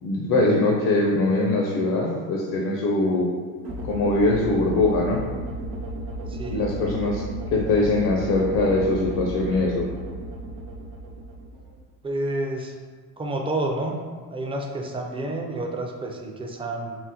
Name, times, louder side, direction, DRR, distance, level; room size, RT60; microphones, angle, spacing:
voice 1, 0.0-3.3 3.8-5.2 6.5-7.2 7.5-9.9, left 2 dB, 60° left, -1 dB, 0.5 m, -22 dB
sound 1, 3.6-11.8, right 1 dB, 75° right, 0.8 m, -34 dB
voice 2, 6.3-6.7 12.0-12.7 13.2-14.0 14.3-17.0, right 2 dB, 15° right, 2 dB, 0.4 m, -29 dB
3.7 x 2.1 x 2.7 m, 1.5 s
supercardioid pair, 85°, 38 cm